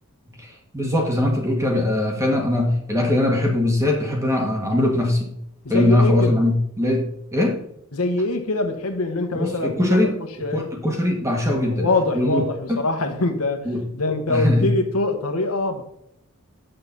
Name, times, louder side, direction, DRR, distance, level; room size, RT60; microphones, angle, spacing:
voice 1, 0.4-5.3 5.7-7.6 9.3-11.8 12.1-12.4 12.7-12.8 13.7-13.8 14.3-14.7, left 1 dB, 15° right, 0 dB, 1.7 m, -21 dB
voice 2, 5.6-6.4 7.9-10.1 10.4-10.6 11.7-13.7 13.9-15.8, left 2 dB, 80° left, 6 dB, 1.2 m, -24 dB
8.0 x 6.7 x 4.0 m, 0.74 s
head